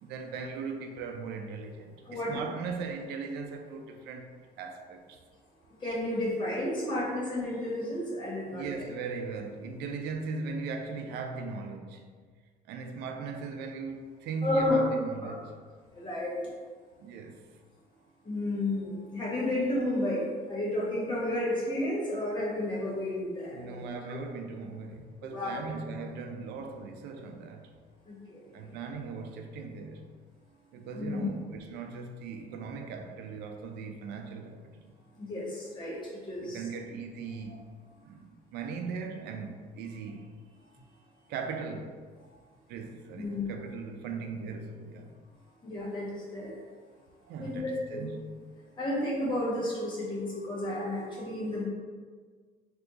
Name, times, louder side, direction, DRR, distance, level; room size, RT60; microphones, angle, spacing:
voice 1, 0.0-5.2 8.5-12.1 12.7-15.5 17.0-17.4 23.5-27.7 28.5-30.1 30.7-35.3 36.4-37.7 38.0-40.4 41.3-42.0 42.7-45.2 47.2-48.4, right 4 dB, 80° right, 0.4 m, -39 dB
voice 2, 2.0-2.4 5.8-8.8 14.4-14.9 15.2-15.3 15.9-16.4 18.2-24.0 25.2-25.6 28.1-28.6 30.9-31.3 35.2-36.0 36.2-36.6 43.2-43.4 45.6-46.5 47.4-48.1 48.8-51.6, left 1 dB, 25° left, 1.3 m, -32 dB
2.7 x 2.4 x 3.7 m
cardioid pair, 110°, 17 cm